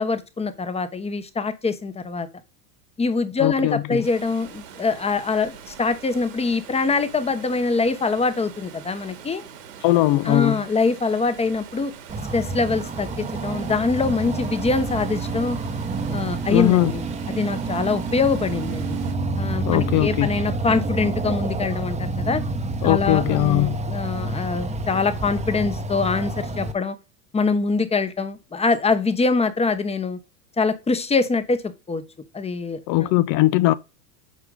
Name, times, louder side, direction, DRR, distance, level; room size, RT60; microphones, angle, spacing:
voice 1, 0.0-2.3 3.0-9.4 10.2-11.9 12.3-15.6 16.1-17.0 17.3-19.0 19.4-22.4 22.8-26.9 27.3-30.2 30.6-31.6 31.9-32.0 32.3-33.1, left 4 dB, 15° left, 1.0 m, -24 dB
voice 2, 3.4-4.1 9.8-10.6 16.5-16.9 19.7-20.3 22.8-23.8 32.9-33.7, left 16 dB, 45° left, 0.5 m, -20 dB
Water, 4.0-19.1, right 8 dB, 80° right, 2.4 m, -43 dB
sound 1, 12.1-26.7, right 2 dB, 15° right, 0.9 m, -28 dB
8.4 x 4.9 x 3.8 m
hypercardioid pair, 105°, 48 cm